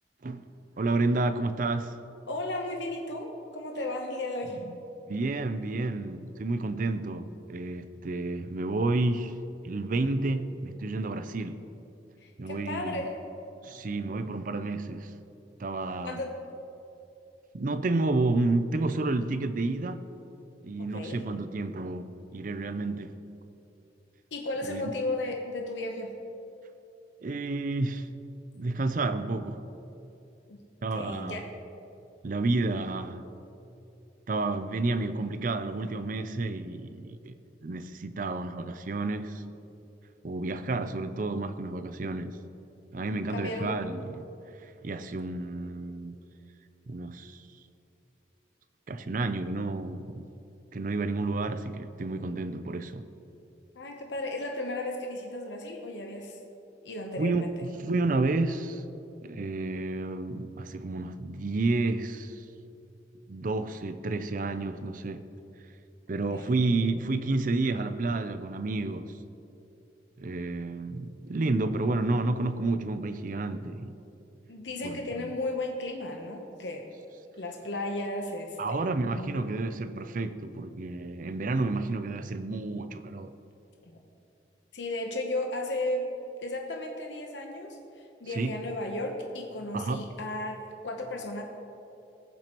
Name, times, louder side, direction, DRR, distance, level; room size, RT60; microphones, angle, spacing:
voice 1, 0.8-1.9 5.1-9.3 9.6-11.6 12.4-13.0 13.6-15.1 15.6-16.2 17.5-20.0 20.6-23.2 24.7-24.9 27.2-28.1 28.5-29.6 30.8-31.5 32.2-33.2 34.3-37.4 37.6-39.4 40.2-42.4 42.9-44.3 44.8-46.2 46.9-47.4 48.9-50.2 50.7-53.1 57.2-57.5 57.8-58.8 59.2-62.4 63.3-65.2 66.1-69.1 70.2-73.9 74.8-75.3 78.6-83.3 88.4-88.6 89.7-90.0, right 2 dB, 50° right, 0.5 m, -30 dB
voice 2, 2.3-4.6 12.2-13.2 16.0-16.4 20.8-21.2 24.3-26.1 30.5-30.6 30.9-31.6 43.3-43.8 53.7-56.4 56.8-57.5 66.3-66.6 74.5-76.9 77.4-79.3 84.7-86.1 86.4-91.4, left 2 dB, 90° left, 1.0 m, -34 dB
18.5 x 7.5 x 3.0 m
head